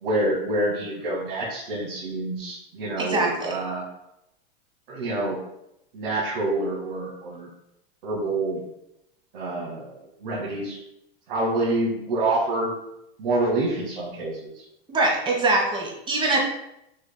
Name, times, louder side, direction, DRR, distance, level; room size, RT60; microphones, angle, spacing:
voice 1, 0.0-3.8 4.9-5.4 5.9-7.5 8.0-8.6 9.3-10.8 11.3-12.7 13.2-14.6, right 2 dB, 65° right, -7 dB, 1.7 m, -27 dB
voice 2, 3.0-3.5 14.9-16.4, right 2 dB, 15° right, -1 dB, 1.2 m, -23 dB
6.3 x 3.5 x 2.2 m, 0.82 s
supercardioid pair, 130°, 30 cm